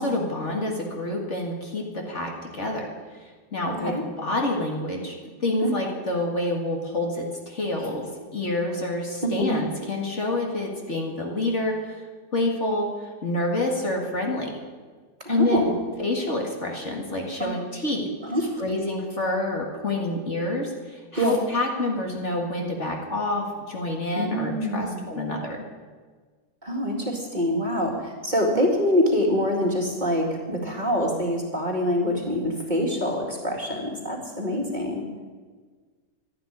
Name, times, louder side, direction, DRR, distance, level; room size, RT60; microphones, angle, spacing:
voice 1, 0.0-2.9 3.5-5.2 5.4-8.1 8.3-12.0 12.3-12.9 13.2-14.5 15.3-15.7 16.0-18.1 18.6-25.6 34.5-34.6, left 2 dB, 40° left, 0 dB, 2.2 m, -27 dB
voice 2, 3.7-4.0 5.6-5.7 9.2-9.5 15.2-15.8 17.4-17.6 18.2-18.6 21.1-21.4 24.1-25.1 26.6-35.0, equal, 25° right, 0 dB, 2.3 m, -25 dB
12.5 x 11.0 x 9.8 m, 1.5 s
omnidirectional pair, 1.9 m